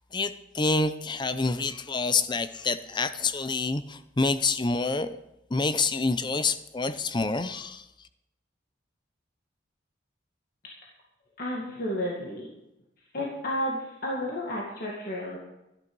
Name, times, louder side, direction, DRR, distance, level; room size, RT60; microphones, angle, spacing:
voice 1, 0.1-5.2 5.5-7.8, left 3 dB, 25° left, 0.5 m, -27 dB
voice 2, 11.4-12.5 13.1-15.4, left 1 dB, 50° left, 2.1 m, -32 dB
12.5 x 10.5 x 5.4 m
head